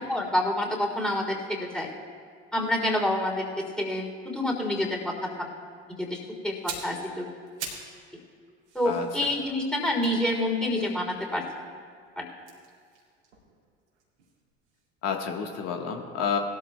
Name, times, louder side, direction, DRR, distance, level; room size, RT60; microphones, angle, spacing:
voice 1, 0.1-1.9 2.5-3.5 3.8-5.1 6.0-7.3 8.7-11.4 12.2-12.3, left 1 dB, ahead, 0 dB, 3.2 m, -27 dB
sound 1, 6.5-8.0 8.3-11.5 12.4-14.4 14.7-14.9, right 5 dB, 75° right, 2.9 m, -43 dB
voice 2, 8.8-9.3 15.0-16.4, left 6 dB, 45° left, 3 dB, 1.5 m, -30 dB
20.0 x 13.0 x 2.3 m, 2.2 s
figure-of-eight pair, 65°, 34 cm